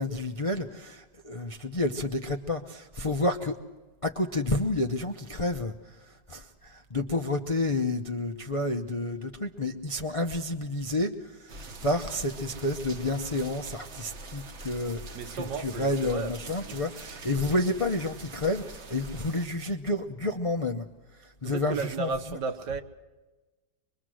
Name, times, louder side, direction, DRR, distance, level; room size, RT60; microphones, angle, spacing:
voice 1, 0.0-3.6 4.0-5.7 6.3-11.1 11.4-20.8 21.4-22.4, left 2 dB, 40° left, 0.4 m, -30 dB
sound 1, 11.5-19.5, right 2 dB, 45° right, 1.2 m, -44 dB
voice 2, 15.1-16.8 19.1-19.2 21.4-22.8, right 4 dB, 75° right, 1.7 m, -34 dB
23.5 x 23.0 x 6.3 m
omnidirectional pair, 1.8 m